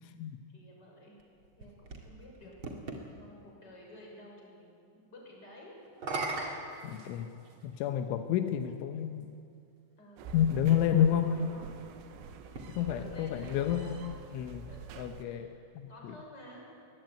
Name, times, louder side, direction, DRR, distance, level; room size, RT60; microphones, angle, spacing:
voice 1, 0.1-1.2 1.6-2.5 3.1-5.8 10.0-11.6 12.1-12.2 12.5-14.0 14.3-14.8 15.2-15.5 15.9-16.7, left 1 dB, 20° left, -1 dB, 6.4 m, -53 dB
sound 1, 1.2-3.1 5.9-7.6 8.6-8.7 12.4-13.9, right 3 dB, 35° right, 2.3 m, -40 dB
voice 2, 6.8-7.3 7.6-9.3 10.3-11.4 12.7-14.7 15.0-15.5 15.8-16.1, left 10 dB, 85° left, 7 dB, 3.5 m, -30 dB
sound 2, 10.2-15.2, right 6 dB, 80° right, 3.7 m, -47 dB
22.5 x 21.0 x 9.2 m, 2.4 s
omnidirectional pair, 5.4 m